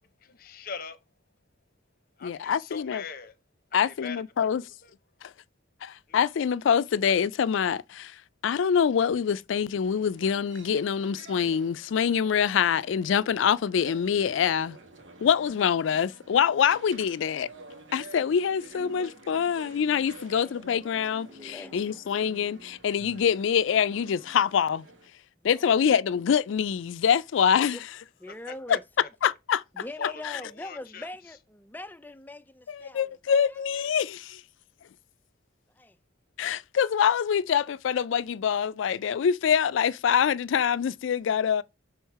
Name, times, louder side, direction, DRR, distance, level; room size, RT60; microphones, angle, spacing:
voice 1, 0.2-1.0 2.2-3.3 3.9-4.2 6.1-6.2 28.5-29.1 30.0-31.1, left 5 dB, 50° left, 0.7 m, -41 dB
voice 2, 2.2-3.0 3.7-4.6 5.2-5.3 5.8-8.2 8.4-14.8 15.2-17.5 17.9-24.9 25.4-27.8 28.7-28.8 29.2-29.6 30.0-30.4 32.7-34.4 36.4-41.6, left 7 dB, 80° left, 0.4 m, -25 dB
sound 1, 9.8-25.1, right 2 dB, 85° right, 1.7 m, -49 dB
voice 3, 20.3-20.6 21.3-22.0 25.4-25.8 27.7-27.8 28.2-28.8 29.7-33.1 33.5-33.6 35.7-36.0, left 1 dB, 10° left, 0.4 m, -43 dB
6.3 x 3.7 x 4.6 m
head